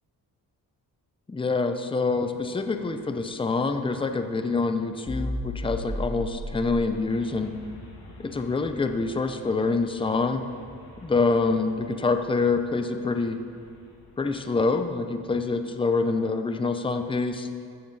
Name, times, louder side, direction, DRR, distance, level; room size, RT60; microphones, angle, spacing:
voice 1, 1.3-7.6 8.2-10.4 11.0-13.4 14.2-17.5, left 3 dB, 15° left, 7 dB, 0.6 m, -26 dB
sound 1, 2.1-14.8, left 1 dB, 80° left, 2.6 m, -40 dB
15.5 x 13.0 x 4.0 m, 2.3 s
wide cardioid pair, 150°, 38 cm